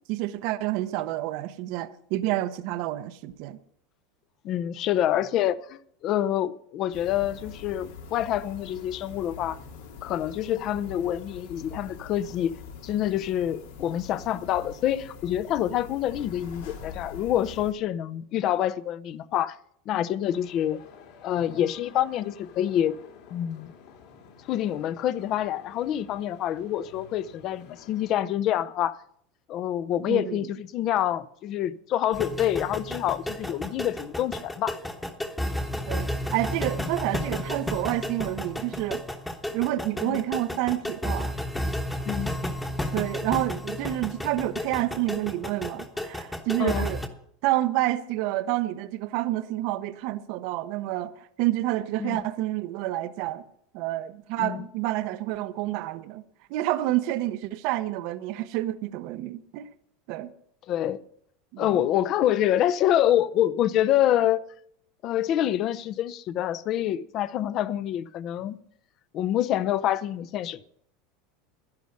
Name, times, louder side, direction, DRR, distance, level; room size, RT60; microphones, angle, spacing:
voice 1, 0.1-3.6 30.1-30.4 35.9-39.0 39.5-41.4 42.9-47.0 47.4-53.4 53.7-56.2 56.5-59.7 60.1-60.3 61.5-61.8, right 15 dB, 55° right, 0.7 m, -29 dB
voice 2, 4.4-9.6 10.0-19.6 19.9-20.8 21.2-23.0 23.3-23.7 24.5-29.0 29.5-34.8 35.7-35.9 40.0-40.2 42.1-42.4 46.6-46.9 52.0-52.2 54.4-54.6 60.7-61.0 61.6-64.4 65.0-68.6 69.1-70.6, left 11 dB, 40° left, 0.6 m, -26 dB
sound 1, 6.9-17.7, left 5 dB, 90° left, 2.7 m, -44 dB
sound 2, 20.2-28.2, left 6 dB, 60° left, 2.5 m, -52 dB
sound 3, 32.1-47.1, left 1 dB, 5° left, 1.1 m, -32 dB
11.5 x 10.5 x 6.4 m
supercardioid pair, 155°, 0 cm